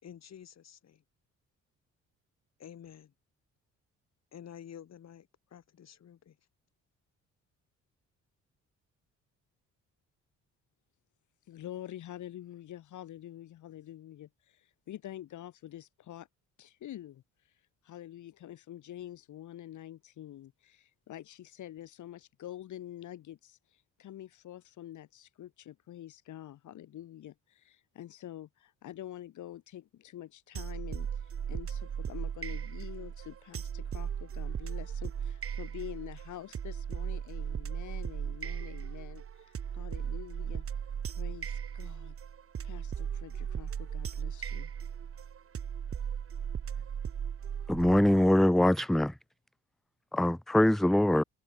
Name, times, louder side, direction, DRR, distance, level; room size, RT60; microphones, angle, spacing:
voice 1, 0.0-1.0 2.6-3.1 4.3-6.4, left 9 dB, 60° left, 5.5 m, -50 dB
voice 2, 11.4-16.3 16.6-40.6 41.1-42.1 42.6-44.7, left 12 dB, 75° left, 6.8 m, -47 dB
sound 1, 30.6-48.3, right 8 dB, 45° right, 2.2 m, -37 dB
voice 3, 47.7-49.1 50.1-51.2, left 1 dB, ahead, 0.4 m, -23 dB
cardioid pair, 90°, 30 cm